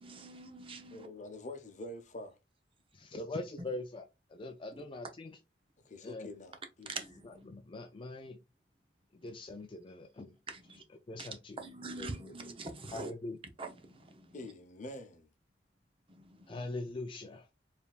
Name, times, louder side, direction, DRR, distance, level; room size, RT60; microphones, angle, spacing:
voice 1, 0.0-1.1 6.9-7.3 10.5-10.8 11.2-11.3 11.6-13.1 13.6-14.0, right 3 dB, 30° right, 0.7 m, -43 dB
voice 2, 0.9-2.4 5.8-7.0 14.3-15.3, left 1 dB, 45° left, 0.8 m, -46 dB
voice 3, 2.9-4.0 4.3-5.4 6.0-6.3 7.2-8.4 9.2-10.4 10.8-11.6 11.9-12.3 12.9-13.4 16.5-17.5, left 2 dB, 30° left, 0.4 m, -42 dB
4.4 x 3.4 x 2.4 m
head